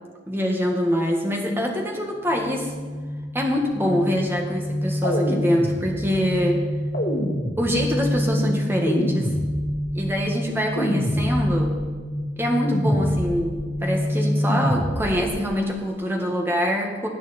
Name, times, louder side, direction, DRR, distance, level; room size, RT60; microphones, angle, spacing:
voice 1, 0.3-2.7 3.3-6.6 7.6-9.3 9.9-11.7 12.4-17.1, equal, 10° right, 0 dB, 1.7 m, -24 dB
sound 1, 2.3-15.1, equal, 80° left, 4.6 m, -27 dB
sound 2, 5.0-6.2 6.9-8.1 8.9-10.0 10.8-11.8 12.7-13.6 14.5-15.4, equal, 55° left, 2.2 m, -28 dB
19.5 x 8.2 x 4.3 m, 1.5 s
head